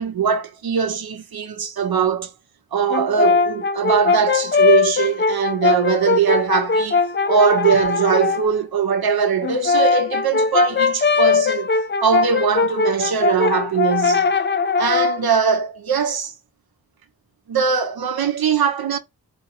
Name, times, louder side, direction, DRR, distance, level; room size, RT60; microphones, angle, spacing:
voice 1, 0.0-2.3 2.7-7.0 7.3-11.7 12.0-14.3 14.8-16.3 17.5-19.0, right 7 dB, 80° right, 0.9 m, -21 dB
Brass instrument, 2.9-8.5 9.4-15.3, left 4 dB, 30° left, 0.4 m, -20 dB
5.1 x 2.0 x 4.5 m
wide cardioid pair, 130°, 37 cm